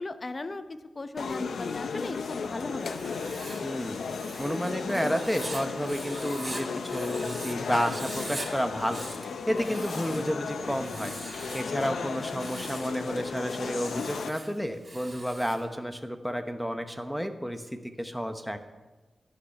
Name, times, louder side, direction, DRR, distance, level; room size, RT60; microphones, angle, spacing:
voice 1, 0.0-3.2 11.8-11.9, left 2 dB, 35° left, 11 dB, 0.7 m, -37 dB
sound 1, 1.2-14.3, left 5 dB, 80° left, 0.6 m, -35 dB
sound 2, 2.2-13.7 14.0-16.0, left 1 dB, 65° left, 3.5 m, -54 dB
Writing, 2.8-7.5 7.8-8.5 8.8-10.3 10.8-11.7 12.2-12.9 13.6-15.6, right 2 dB, 25° right, 2.3 m, -42 dB
voice 2, 3.6-4.0 4.4-9.1 9.5-11.2 11.5-18.6, equal, ahead, 7 dB, 0.9 m, -31 dB
11.5 x 8.1 x 5.7 m, 1.2 s
wide cardioid pair, 90°, 0 cm